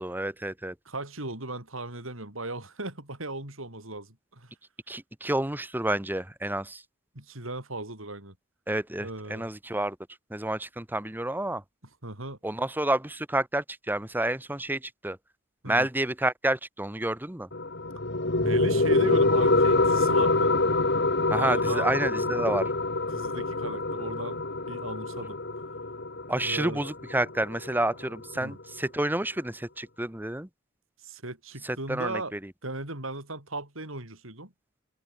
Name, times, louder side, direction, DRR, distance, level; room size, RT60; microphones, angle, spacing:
voice 1, 0.0-0.7 4.9-6.8 8.7-10.0 10.3-11.6 12.4-15.2 15.7-17.5 21.3-22.7 26.3-30.5 31.6-32.4, right 1 dB, 10° right, 1.4 m, -29 dB
voice 2, 0.8-4.5 7.1-8.3 9.0-9.5 12.0-12.4 15.6-15.9 18.3-20.6 21.4-21.9 23.1-25.4 26.4-26.8 28.3-28.6 31.0-32.3 32.6-34.5, right 2 dB, 70° right, 6.3 m, -37 dB
sound 1, 17.5-28.5, left 2 dB, 55° left, 2.6 m, -26 dB
head